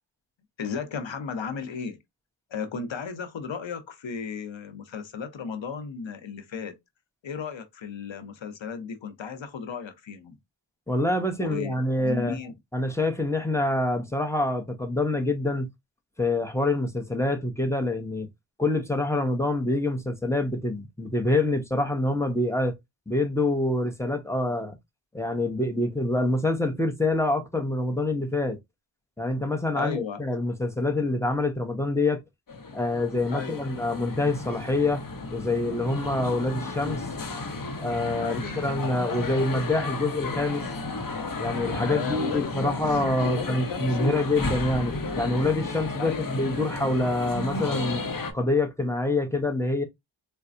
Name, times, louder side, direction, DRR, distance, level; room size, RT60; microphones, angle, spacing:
voice 1, 0.6-2.0 2.5-6.8 7.2-10.4 11.4-12.5 29.8-30.2 33.3-33.6 38.2-38.5 41.8-43.0 43.2-44.3 46.0-46.2, left 6 dB, 80° left, 0.8 m, -34 dB
voice 2, 10.9-12.4 12.7-15.7 16.2-18.3 18.6-22.8 23.1-24.8 25.1-28.6 29.2-32.2 32.7-35.0 35.3-37.1 37.7-40.6 41.4-48.0 48.3-49.8, left 2 dB, 5° left, 0.8 m, -26 dB
sound 1, 32.5-48.3, left 3 dB, 45° left, 0.8 m, -33 dB
4.1 x 2.2 x 2.5 m
cardioid pair, 50°, 45 cm